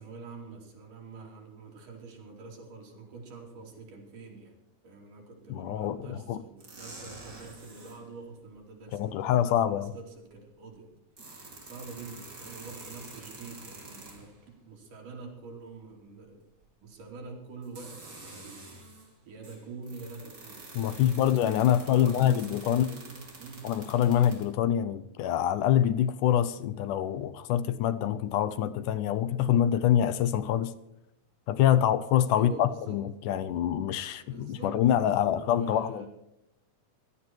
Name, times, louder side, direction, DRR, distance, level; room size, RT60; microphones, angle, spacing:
voice 1, 0.0-4.6 4.8-10.9 11.2-14.3 14.6-16.5 16.8-18.7 19.3-21.2 21.7-23.7 32.3-33.0 34.1-36.1, right 4 dB, 65° right, 4.5 m, -46 dB
voice 2, 5.5-6.4 8.9-9.9 20.8-22.9 23.6-30.7 31.5-36.1, left 10 dB, 75° left, 2.0 m, -25 dB
sound 1, 6.6-8.0 9.6-9.7 10.9-14.5 16.6-16.7 17.6-19.1 19.4-24.4, right 2 dB, 25° right, 3.4 m, -47 dB
17.5 x 12.5 x 4.5 m
omnidirectional pair, 4.1 m